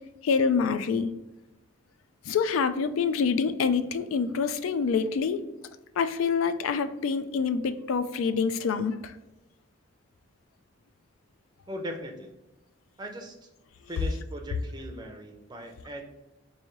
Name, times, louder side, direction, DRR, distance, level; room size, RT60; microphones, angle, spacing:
voice 1, 0.2-1.1 2.3-5.4 6.0-8.9, left 5 dB, 90° left, 11 dB, 0.3 m, -26 dB
voice 2, 11.7-12.4 13.0-13.5 13.9-16.0, equal, 20° right, 3 dB, 0.5 m, -39 dB
4.7 x 2.7 x 3.0 m, 0.98 s
head